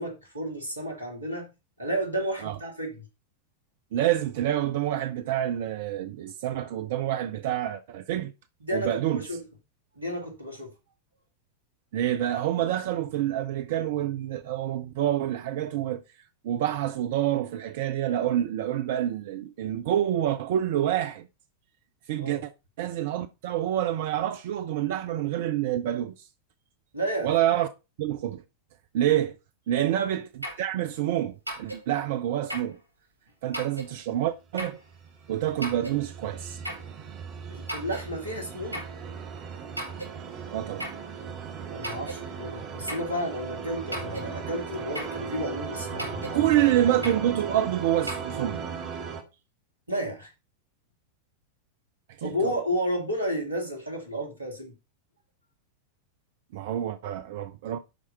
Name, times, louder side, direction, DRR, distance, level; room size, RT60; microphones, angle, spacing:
voice 1, 0.0-1.5 1.8-2.9 8.6-9.4 10.0-10.7 22.2-22.4 26.9-27.3 29.7-29.9 37.5-38.8 41.7-46.4 49.9-50.3 52.2-54.7, equal, 80° right, 2.6 m, -32 dB
voice 2, 3.9-8.3 8.7-9.3 11.9-16.0 16.4-21.3 22.1-22.5 22.8-26.3 27.2-27.7 28.0-28.4 28.9-29.4 29.7-32.8 33.4-34.8 35.3-36.6 40.5-40.9 46.3-48.6 52.1-52.5 56.5-57.8, right 12 dB, 55° right, 0.6 m, -27 dB
sound 1, 30.4-30.7 31.5-31.8 32.5-32.8 33.5-33.9 34.6-34.8 35.6-36.0 36.6-36.9 37.7-38.1 38.7-39.0 39.8-40.1 40.8-41.1 41.8-42.2 42.9-43.1 43.9-44.3 44.9-45.2 46.0-46.4 47.0-47.3 48.1-48.2, right 1 dB, 90° left, 4.4 m, -35 dB
sound 2, 34.9-49.2, right 6 dB, 40° right, 1.9 m, -37 dB
11.5 x 4.8 x 4.2 m
figure-of-eight pair, 90°, 0 cm